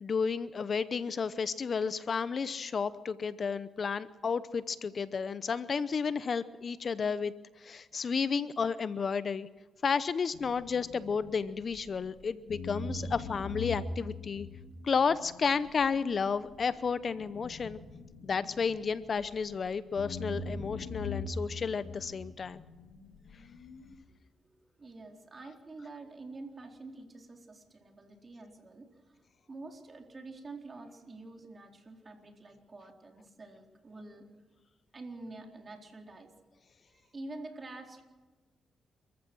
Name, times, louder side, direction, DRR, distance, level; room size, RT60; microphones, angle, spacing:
voice 1, 0.0-9.5 9.8-14.5 14.8-17.8 18.2-22.6, left 5 dB, 50° left, 15 dB, 0.8 m, -32 dB
sound 1, 10.3-12.1 12.5-19.6 20.0-24.0, left 3 dB, 80° left, 2.8 m, -42 dB
voice 2, 24.4-28.9 29.5-34.4 34.9-36.3 36.9-38.0, right 2 dB, 35° right, 2 dB, 4.1 m, -47 dB
29.0 x 14.5 x 6.3 m, 1.3 s
cardioid pair, 80°, 0 cm